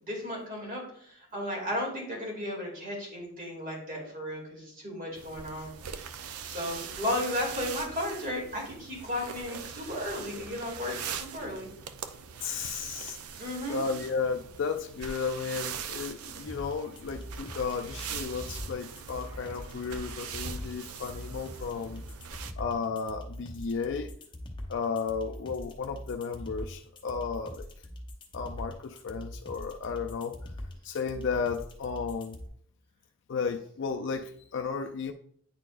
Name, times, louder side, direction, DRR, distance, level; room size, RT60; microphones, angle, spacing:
voice 1, 0.0-5.7 6.5-11.7 13.4-13.8, left 1 dB, 35° right, -2 dB, 2.4 m, -34 dB
sound 1, 5.1-22.5, right 7 dB, 85° right, 0.5 m, -42 dB
voice 2, 12.4-22.0 22.6-24.1 24.7-27.7 28.3-30.4 30.8-32.4 33.3-35.1, left 5 dB, 55° left, 5 dB, 0.4 m, -34 dB
sound 2, 16.5-32.5, left 1 dB, 20° left, 0.8 m, -42 dB
9.6 x 4.3 x 2.5 m, 0.64 s
head